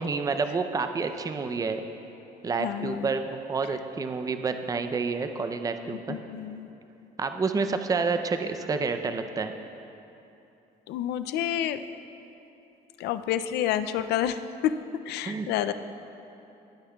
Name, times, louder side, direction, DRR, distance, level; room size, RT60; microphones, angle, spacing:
voice 1, 0.0-1.8 2.4-6.2 7.2-9.5 15.3-15.5, right 4 dB, 20° right, 7 dB, 0.5 m, -29 dB
voice 2, 2.6-3.1 6.1-6.7 10.9-11.9 13.0-14.7 15.1-15.7, left 11 dB, 75° left, 11 dB, 0.4 m, -29 dB
18.0 x 9.3 x 2.3 m, 2.9 s
cardioid pair, 110°, 17 cm